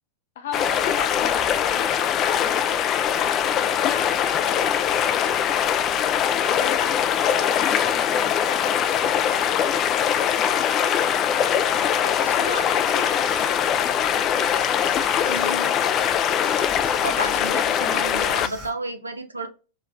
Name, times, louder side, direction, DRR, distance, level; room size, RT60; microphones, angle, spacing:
voice 1, 0.4-2.9 3.4-5.6 6.0-10.4 11.4-12.4 12.9-13.2, left 7 dB, 60° left, 0.8 m, -38 dB
sound 1, 0.5-18.7, left 9 dB, 30° left, 0.4 m, -22 dB
voice 2, 12.0-12.6 15.2-15.7 17.0-19.5, right 2 dB, 80° right, 0.6 m, -32 dB
sound 2, 12.5-13.5 14.4-15.5 16.4-17.5 18.4-18.7, right 2 dB, 35° right, 1.6 m, -42 dB
4.7 x 2.3 x 3.4 m
figure-of-eight pair, 90°, 0 cm